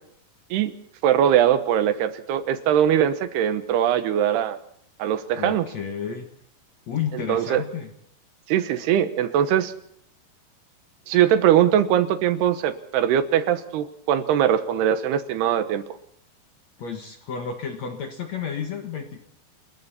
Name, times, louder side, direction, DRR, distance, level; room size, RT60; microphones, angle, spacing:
voice 1, 1.0-4.6 5.0-5.6 7.3-7.6 8.5-9.7 11.1-15.8, right 10 dB, 75° right, 11 dB, 3.1 m, -21 dB
voice 2, 5.4-6.3 6.9-7.9 16.8-19.2, left 7 dB, 55° left, 5 dB, 2.1 m, -31 dB
29.5 x 21.0 x 4.3 m, 0.67 s
omnidirectional pair, 4.9 m